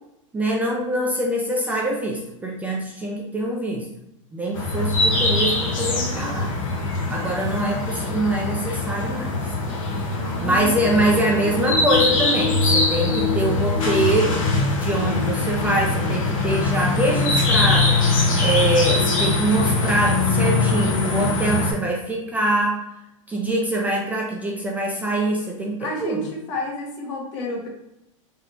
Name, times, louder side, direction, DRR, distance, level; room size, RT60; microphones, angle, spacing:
voice 1, 0.3-3.9 4.3-6.5 7.1-9.3 10.4-14.4 14.7-22.8 23.3-26.2, right 1 dB, 10° right, -1 dB, 0.3 m, -24 dB
sound 1, 4.5-21.7, left 3 dB, 80° left, 0.9 m, -22 dB
voice 2, 10.2-11.0 25.8-27.7, left 1 dB, 60° left, -1 dB, 1.1 m, -30 dB
3.4 x 2.7 x 2.4 m, 0.86 s
supercardioid pair, 140°, 17 cm